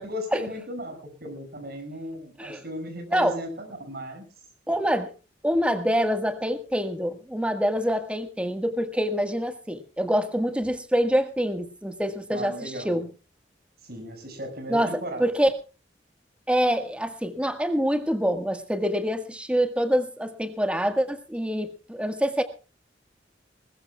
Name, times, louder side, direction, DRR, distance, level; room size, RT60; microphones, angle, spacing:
voice 1, 0.0-4.3 12.3-12.9 13.8-15.3, equal, 60° right, 5 dB, 6.0 m, -36 dB
voice 2, 4.7-5.1 5.4-13.1 14.7-14.9 15.2-15.5 16.5-22.4, equal, 5° right, 7 dB, 1.6 m, -25 dB
20.5 x 20.5 x 2.3 m, 0.34 s
head